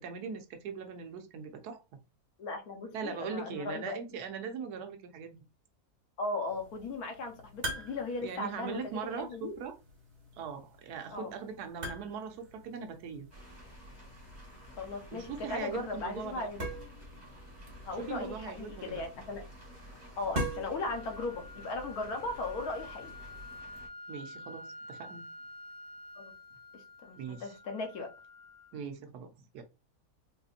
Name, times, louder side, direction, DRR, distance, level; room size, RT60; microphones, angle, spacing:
voice 1, 0.0-1.8 2.9-5.3 8.2-9.8 10.4-13.3 15.1-16.5 18.0-19.0 24.1-25.3 27.2-27.5 28.7-29.6, right 6 dB, 85° right, 1.2 m, -40 dB
voice 2, 2.4-4.0 6.2-8.8 9.2-9.5 11.1-11.3 14.8-16.7 17.8-19.4 20.2-23.1 26.2-26.3 26.7-28.1, left 3 dB, 75° left, 1.3 m, -37 dB
sound 1, 6.5-23.6, right 1 dB, 50° right, 1.5 m, -45 dB
sound 2, 13.3-23.9, equal, 10° right, 1.0 m, -51 dB
sound 3, 20.8-28.8, left 2 dB, 45° left, 1.0 m, -49 dB
4.0 x 2.7 x 2.4 m
omnidirectional pair, 1.6 m